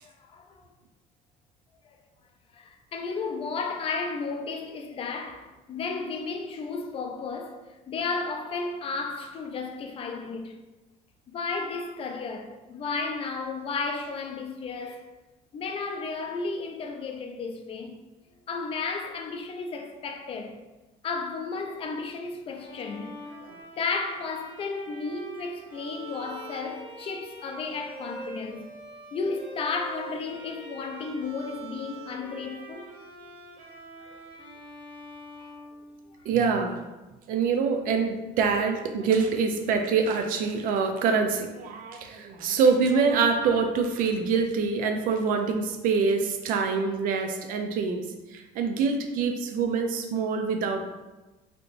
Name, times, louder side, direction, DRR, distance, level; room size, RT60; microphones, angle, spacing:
voice 1, 0.0-0.6 2.5-7.6 7.9-10.6 11.3-15.1 15.5-18.0 18.5-20.6 21.0-23.2 23.7-28.7 29.1-32.9 34.0-34.2, left 4 dB, 35° left, 0.4 m, -33 dB
Bowed string instrument, 22.5-36.4, right 2 dB, 30° right, 1.0 m, -44 dB
voice 2, 36.3-36.8 37.3-48.0 48.3-50.8, right 5 dB, 60° right, 0.5 m, -25 dB
3.5 x 2.7 x 2.6 m
cardioid pair, 120°, 16 cm